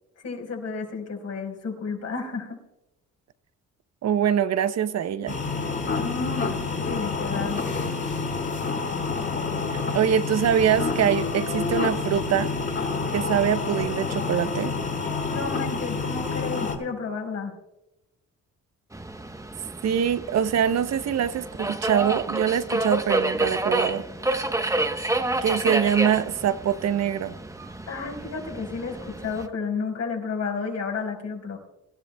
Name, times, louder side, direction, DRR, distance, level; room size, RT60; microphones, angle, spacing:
voice 1, 0.2-2.6 6.9-7.6 15.2-17.5 25.6-25.7 27.9-31.6, left 5 dB, 60° left, 4.7 m, -31 dB
voice 2, 4.0-5.4 9.7-12.5 13.1-14.8 19.8-24.0 25.4-27.3, right 9 dB, 60° right, 0.8 m, -24 dB
sound 1, 5.3-16.8, left 4 dB, 40° left, 4.0 m, -28 dB
Subway metro underground, 18.9-29.5, right 2 dB, 10° right, 1.0 m, -29 dB
24.5 x 13.0 x 2.3 m
cardioid pair, 90°, 30 cm